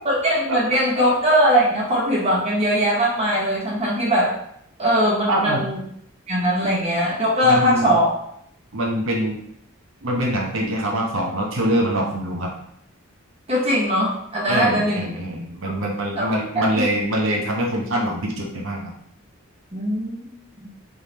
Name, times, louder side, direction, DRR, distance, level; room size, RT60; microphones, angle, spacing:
voice 1, 0.0-4.4 4.8-5.8 6.3-8.1 13.5-15.1 15.7-15.8 16.2-16.3 16.5-16.8 19.7-20.7, equal, 30° right, -5 dB, 1.2 m, -20 dB
voice 2, 5.3-5.6 6.6-6.7 7.4-7.9 8.7-9.4 10.0-12.5 14.5-18.9, right 1 dB, 60° right, 0 dB, 0.9 m, -24 dB
3.7 x 3.3 x 4.2 m, 0.72 s
head